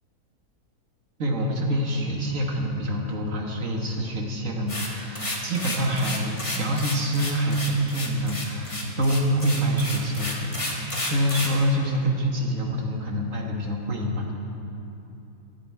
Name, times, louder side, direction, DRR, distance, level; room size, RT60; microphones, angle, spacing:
voice 1, 1.2-14.3, equal, 55° right, 0 dB, 1.8 m, -26 dB
sound 1, 4.7-11.6, left 1 dB, 20° left, 1.5 m, -31 dB
22.0 x 7.7 x 4.7 m, 2.9 s
omnidirectional pair, 1.7 m